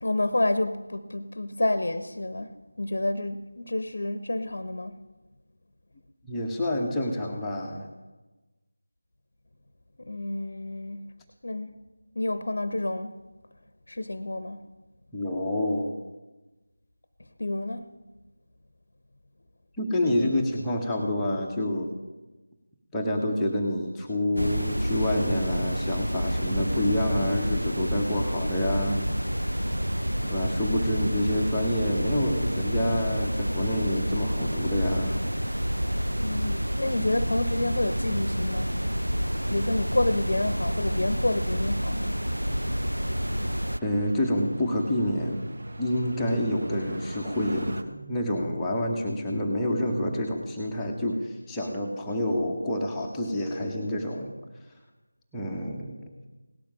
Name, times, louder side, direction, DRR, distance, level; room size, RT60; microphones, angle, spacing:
voice 1, 0.0-5.0 10.0-11.1 11.4-11.7 12.1-13.1 13.9-14.6 17.4-17.9 36.1-38.7 39.5-42.2, left 1 dB, 50° left, 13 dB, 0.8 m, -29 dB
voice 2, 6.2-7.9 15.1-15.9 19.8-21.9 22.9-29.1 30.2-35.2 43.8-45.5 45.8-54.4 55.3-56.1, left 1 dB, 5° left, -4 dB, 1.0 m, -28 dB
sound 1, 24.4-43.8, equal, 80° right, 0.5 m, -28 dB
sound 2, 29.7-47.8, right 1 dB, 45° right, 1.2 m, -43 dB
17.5 x 12.0 x 6.1 m, 1.2 s
figure-of-eight pair, 165°, 0 cm